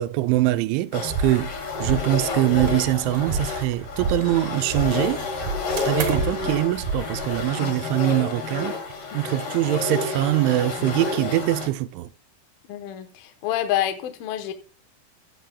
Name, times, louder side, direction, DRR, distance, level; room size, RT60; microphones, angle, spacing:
voice 1, 0.0-5.3 5.9-8.8 9.1-12.1, right 16 dB, 90° right, 3.0 m, -23 dB
sound 1, 0.9-11.7, left 4 dB, 50° left, 1.8 m, -30 dB
sound 2, 1.0-7.4, right 3 dB, 55° right, 2.5 m, -31 dB
sound 3, 2.6-3.4 3.7-4.6 5.8-6.5, right 8 dB, 70° right, 2.1 m, -34 dB
voice 2, 12.7-14.5, left 12 dB, 75° left, 2.3 m, -27 dB
14.5 x 8.9 x 2.2 m
omnidirectional pair, 5.2 m